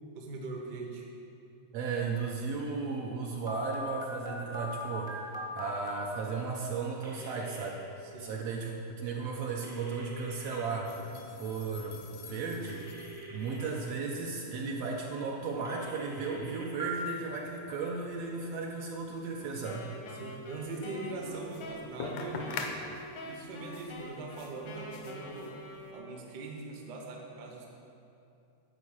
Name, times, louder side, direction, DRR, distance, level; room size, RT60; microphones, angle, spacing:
voice 1, 0.1-1.1 8.1-8.3 19.5-19.6 20.2-22.7 23.2-25.6 25.9-27.7, right 3 dB, 55° right, 0 dB, 1.2 m, -41 dB
voice 2, 1.7-10.9 11.3-12.9 13.3-19.9, right 4 dB, 75° right, -1 dB, 1.7 m, -35 dB
Telephone, 3.5-6.0 7.0-7.7 9.6-10.6 12.6-13.6 15.6-16.9, right 1 dB, 5° right, 0.6 m, -42 dB
sound 1, 10.9-25.9, left 5 dB, 85° left, 2.1 m, -47 dB
Wind instrument woodwind instrument, 19.6-26.5, left 1 dB, 65° left, 1.2 m, -46 dB
11.0 x 4.5 x 7.2 m, 2.7 s
omnidirectional pair, 3.3 m